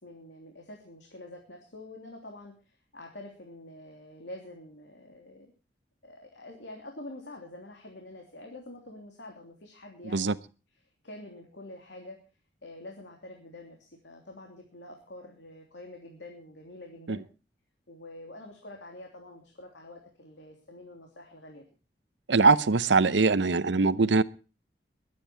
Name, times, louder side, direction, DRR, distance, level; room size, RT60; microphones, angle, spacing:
voice 1, 0.0-5.5 6.0-10.4 11.0-12.2 12.6-17.2 17.9-21.6, left 1 dB, 75° left, 3.2 m, -46 dB
voice 2, 22.3-24.2, right 4 dB, 80° right, 0.8 m, -22 dB
22.0 x 9.5 x 4.5 m
head